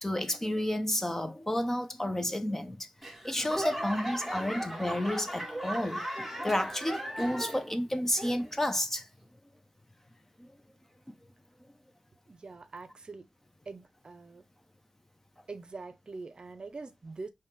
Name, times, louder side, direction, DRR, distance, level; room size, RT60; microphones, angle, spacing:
voice 1, 0.0-2.9 3.2-9.1 10.4-10.5, left 1 dB, 15° left, 0.7 m, -31 dB
Laughter / Clapping / Crowd, 3.0-7.8 8.1-8.6 9.2-9.3, equal, ahead, 1.3 m, -37 dB
voice 2, 12.3-13.2 13.7-14.4 15.5-17.3, right 3 dB, 50° right, 0.6 m, -44 dB
4.3 x 3.2 x 3.6 m
wide cardioid pair, 100°, 2 cm